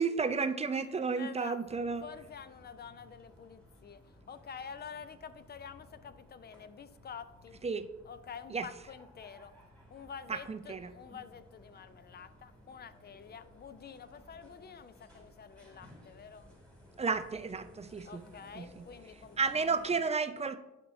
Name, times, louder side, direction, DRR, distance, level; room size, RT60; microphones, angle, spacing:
voice 1, 0.0-2.1 7.6-7.9 8.5-8.7 10.3-10.9 17.0-18.2 18.6-18.8 19.4-20.6, right 5 dB, 20° right, 10 dB, 0.4 m, -32 dB
voice 2, 0.6-7.5 8.0-9.6 9.9-16.5 18.0-20.0, left 6 dB, 35° left, 13 dB, 0.5 m, -48 dB
sound 1, 1.6-20.0, left 1 dB, 5° left, 2.3 m, -58 dB
11.0 x 4.3 x 2.7 m, 0.98 s
cardioid pair, 90°, 30 cm